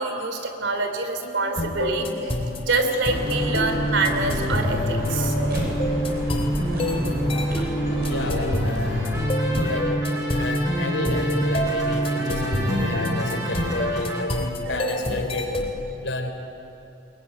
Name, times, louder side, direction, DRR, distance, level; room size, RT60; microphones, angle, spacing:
voice 1, 0.0-6.5 7.6-7.7 7.9-8.2 9.5-9.8 13.1-13.2 14.4-15.1, right 3 dB, 80° right, 6 dB, 3.2 m, -27 dB
sound 1, 1.6-15.8, equal, 30° left, 3.4 m, -29 dB
sound 2, 3.0-9.2, equal, 55° right, 7.8 m, -32 dB
sound 3, 3.2-14.2, equal, 20° right, 6.3 m, -27 dB
voice 2, 8.0-9.2 9.5-9.9 10.3-14.3 14.7-15.5 16.0-16.3, left 2 dB, 90° left, 4 dB, 3.8 m, -30 dB
23.0 x 22.5 x 10.0 m, 2.8 s
head